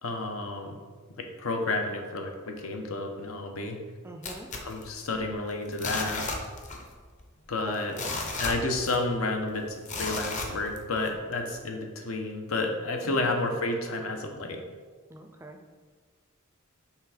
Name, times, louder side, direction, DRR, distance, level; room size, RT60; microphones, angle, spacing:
voice 1, 0.0-0.8 1.2-3.8 4.6-6.3 7.5-7.9 8.4-14.6, left 2 dB, 85° left, 3 dB, 0.8 m, -31 dB
voice 2, 4.0-4.5 7.6-8.1 13.0-13.3 15.1-15.8, right 2 dB, 10° right, 4 dB, 0.4 m, -44 dB
sound 1, 4.2-5.4 5.7-6.9 7.2-7.3 7.7-9.2 9.9-11.1 11.6-11.7, left 3 dB, 35° left, 0.7 m, -34 dB
5.8 x 3.4 x 4.9 m, 1.5 s
head